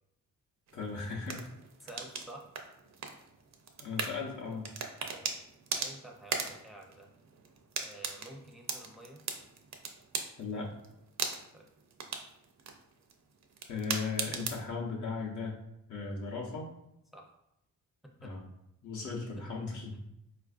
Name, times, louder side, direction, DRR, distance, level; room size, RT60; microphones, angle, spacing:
voice 1, 0.7-1.4 3.8-4.7 10.4-10.7 13.7-15.5 15.9-16.7 18.2-18.4 18.8-20.0, left 4 dB, 60° left, -2 dB, 0.7 m, -37 dB
sound 1, 0.7-14.7, right 5 dB, 55° right, 0.5 m, -40 dB
voice 2, 1.8-2.5 5.1-5.4 5.7-7.1 7.8-9.2 11.5-11.7 17.1-17.3 18.0-18.3, right 1 dB, ahead, 1 dB, 0.5 m, -50 dB
4.1 x 2.4 x 2.4 m, 0.83 s
cardioid pair, 100°, 34 cm